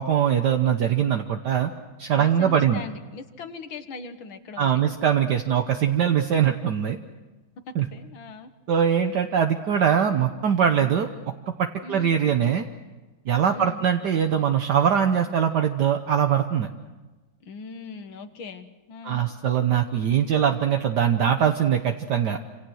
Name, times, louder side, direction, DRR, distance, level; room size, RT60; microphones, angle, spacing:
voice 1, 0.0-1.7 2.0-2.8 4.6-7.0 7.7-7.9 8.7-11.1 11.6-12.6 13.3-16.7 19.0-22.4, right 8 dB, 65° right, 5 dB, 1.5 m, -22 dB
voice 2, 2.1-4.7 7.7-8.5 11.8-12.2 13.5-13.9 17.4-19.3, left 4 dB, 80° left, 8 dB, 2.3 m, -40 dB
27.5 x 27.0 x 6.4 m, 1.2 s
omnidirectional pair, 2.2 m